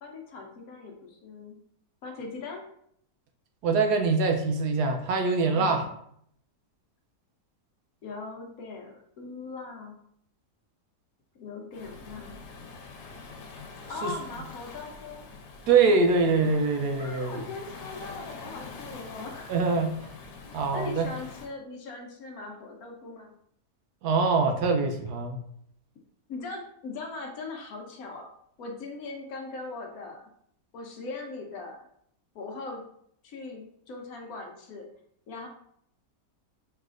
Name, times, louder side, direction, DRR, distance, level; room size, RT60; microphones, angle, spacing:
voice 1, 0.0-1.6 2.0-2.6 5.6-5.8 8.0-10.0 11.4-12.4 13.9-15.2 17.0-19.5 20.5-23.3 26.3-28.3 28.6-30.3 30.7-31.8 32.3-32.8 33.2-34.9 35.3-35.5, left 3 dB, 65° left, 2 dB, 1.1 m, -40 dB
voice 2, 3.6-5.8 14.0-14.1 15.7-17.4 19.5-19.9 20.5-21.1 24.0-25.4, right 4 dB, 75° right, 5 dB, 1.1 m, -24 dB
Waves surf, 11.7-21.5, left 4 dB, 85° left, 1.3 m, -45 dB
4.7 x 3.2 x 2.5 m, 0.69 s
omnidirectional pair, 1.8 m